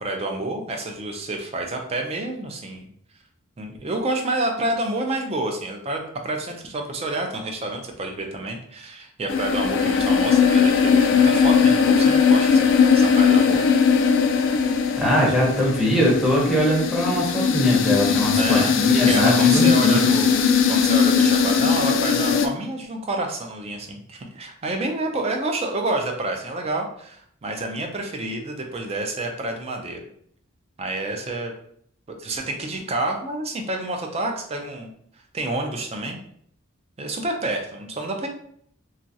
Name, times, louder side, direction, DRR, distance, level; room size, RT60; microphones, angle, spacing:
voice 1, 0.0-2.9 3.6-13.6 18.4-18.8 19.1-20.4 20.7-30.0 30.8-31.5 32.1-34.9 35.3-36.2 37.0-38.3, right 2 dB, 30° right, 3 dB, 0.4 m, -28 dB
sound 1, 9.3-22.5, left 6 dB, 60° left, 0.3 m, -19 dB
voice 2, 15.0-20.0, equal, ahead, -4 dB, 0.7 m, -21 dB
3.0 x 2.4 x 2.7 m, 0.66 s
head